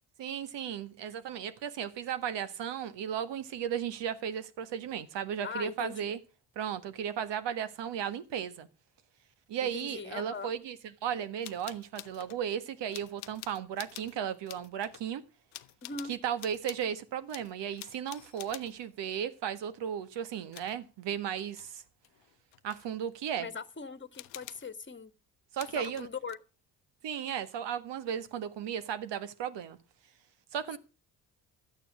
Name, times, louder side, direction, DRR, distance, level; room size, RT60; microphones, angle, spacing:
voice 1, 0.2-6.2 6.5-8.7 9.5-10.8 11.0-15.2 16.1-21.8 22.6-23.5 25.5-26.1 27.0-29.8 30.5-30.8, right 9 dB, 65° right, 1.6 m, -35 dB
voice 2, 5.4-6.1 9.6-10.5 15.8-16.1 23.4-25.1 25.7-26.4, left 5 dB, 25° left, 1.7 m, -40 dB
sound 1, 11.4-12.4 12.9-14.2 14.5-15.1 15.5-16.9 17.3-18.8 20.5-20.8 21.4-21.7 22.0-22.9 24.1-24.7 25.6-26.3, left 20 dB, 75° left, 0.8 m, -48 dB
13.0 x 9.1 x 6.2 m
hypercardioid pair, 50°, 46 cm